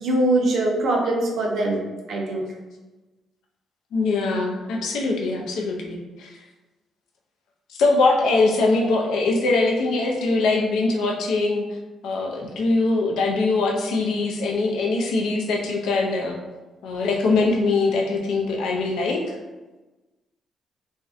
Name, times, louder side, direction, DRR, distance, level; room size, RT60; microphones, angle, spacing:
voice 1, 0.0-1.8 2.1-2.4, right 2 dB, 70° right, -1 dB, 0.5 m, -22 dB
voice 2, 3.9-6.3 7.8-11.7 12.0-16.4 16.8-19.3, left 3 dB, 80° left, 0 dB, 0.4 m, -22 dB
2.5 x 2.1 x 2.4 m, 1.2 s
cardioid pair, 90°, 0 cm